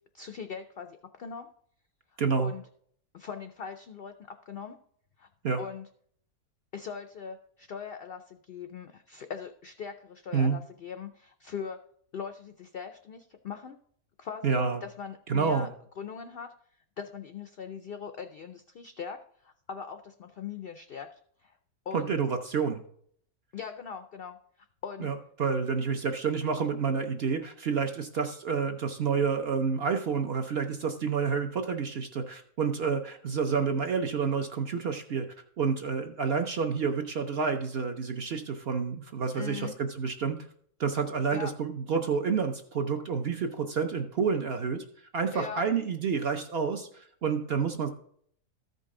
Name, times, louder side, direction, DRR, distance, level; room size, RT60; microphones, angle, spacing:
voice 1, 0.1-1.5 2.4-2.6 3.1-4.1 4.5-4.8 5.2-5.3 5.6-5.9 6.7-11.8 12.1-13.8 14.2-15.7 16.0-16.5 17.0-19.2 19.4-21.1 21.4-21.5 21.9-22.1 23.5-24.4 24.8-25.1 39.3-39.7 41.3-41.5 45.3-45.6, left 6 dB, 75° left, 8 dB, 0.5 m, -40 dB
voice 2, 2.2-2.5 5.4-5.6 10.3-10.6 14.4-14.8 15.3-15.7 21.9-22.8 25.0-35.3 35.6-40.4 40.8-44.8 45.1-47.9, right 5 dB, 55° right, 5 dB, 0.7 m, -29 dB
14.0 x 5.3 x 3.7 m, 0.62 s
omnidirectional pair, 1.6 m